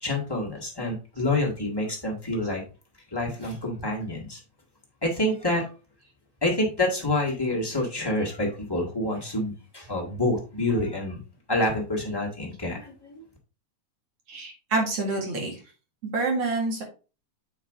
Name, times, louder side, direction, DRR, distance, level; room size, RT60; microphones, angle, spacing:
voice 1, 0.0-2.6 3.1-4.4 5.0-5.7 6.4-11.2 11.5-13.2, left 1 dB, 15° left, -3 dB, 1.0 m, -27 dB
voice 2, 14.3-15.6 16.0-16.8, right 3 dB, 55° right, -1 dB, 2.8 m, -27 dB
8.1 x 4.8 x 3.6 m, 0.33 s
omnidirectional pair, 3.3 m